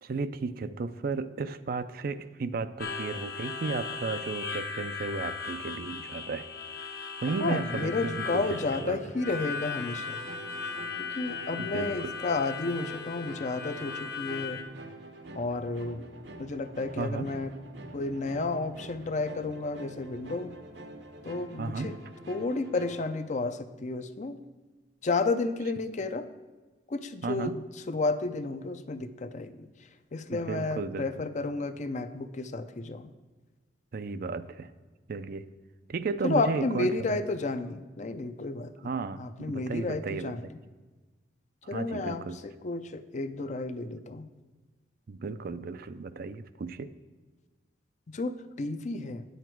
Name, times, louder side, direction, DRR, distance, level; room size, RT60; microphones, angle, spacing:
voice 1, 0.0-6.5 7.2-9.0 11.5-12.1 17.0-17.3 21.6-22.0 27.2-27.6 30.3-31.1 33.9-34.7 35.1-35.4 35.9-37.2 38.8-40.3 41.7-42.4 45.1-46.9, right 4 dB, 55° right, 12 dB, 0.4 m, -34 dB
Harmonica, 2.8-14.6, left 5 dB, 60° left, 1.0 m, -37 dB
sound 1, 7.2-23.2, right 1 dB, 75° right, 1.0 m, -46 dB
voice 2, 7.4-10.2 11.0-14.6 15.3-16.0 16.4-17.5 17.9-20.5 21.2-22.0 22.3-24.4 25.0-26.2 26.9-29.7 30.1-33.1 36.2-38.7 39.2-40.6 41.7-42.2 42.6-44.3 48.1-49.2, left 3 dB, 45° left, 10 dB, 0.5 m, -32 dB
9.3 x 8.0 x 4.6 m, 1.3 s
head